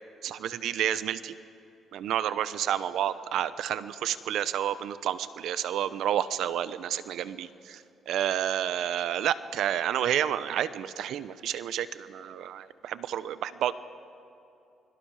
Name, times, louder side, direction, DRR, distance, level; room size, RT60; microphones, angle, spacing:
voice 1, 0.2-1.3 1.9-13.7, right 10 dB, 80° right, 14 dB, 0.8 m, -30 dB
29.0 x 23.0 x 4.9 m, 2.7 s
cardioid pair, 90°, 0 cm